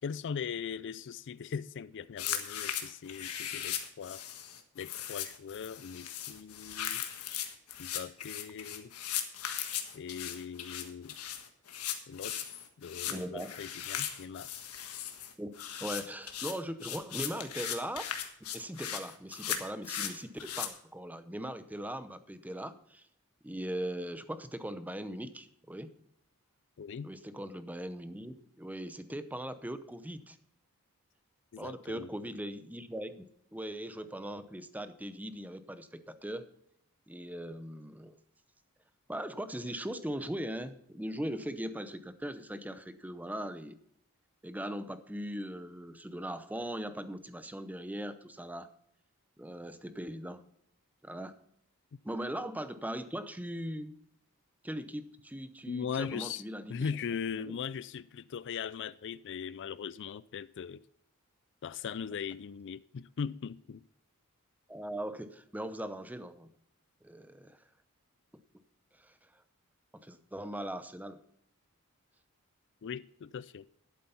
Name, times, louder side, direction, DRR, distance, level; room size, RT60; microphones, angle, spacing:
voice 1, 0.0-4.2 4.8-7.0 7.8-8.9 9.9-11.2 12.1-12.5 12.8-14.5 26.8-27.1 31.5-32.1 55.7-56.4 56.7-60.8 61.6-63.8 72.8-73.7, left 6 dB, 55° left, 0.4 m, -39 dB
sound 1, 2.2-20.7, left 9 dB, 85° left, 1.5 m, -38 dB
voice 2, 13.1-13.5 15.4-15.5 15.8-18.1 18.5-23.1 23.4-25.9 27.0-30.4 31.6-36.5 37.1-38.1 39.1-43.8 44.4-48.7 49.4-50.4 51.0-51.4 52.0-54.0 54.6-56.9 57.4-57.6 64.7-66.5 67.0-67.6 69.0-69.4 70.0-71.2, right 1 dB, 5° right, 0.7 m, -40 dB
11.5 x 8.5 x 5.6 m
head